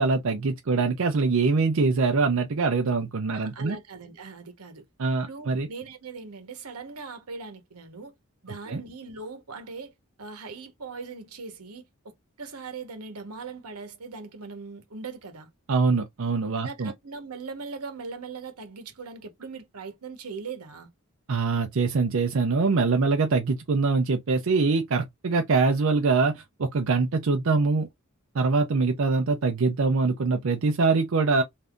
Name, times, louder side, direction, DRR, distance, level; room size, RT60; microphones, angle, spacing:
voice 1, 0.0-3.8 5.0-5.7 8.7-8.8 15.7-16.9 21.3-27.9 28.3-31.4, right 4 dB, 65° right, 0.5 m, -23 dB
voice 2, 3.3-4.8 5.2-8.1 8.4-9.9 10.2-15.5 16.6-20.9, right 4 dB, 90° right, 1.1 m, -40 dB
3.4 x 2.7 x 2.4 m
head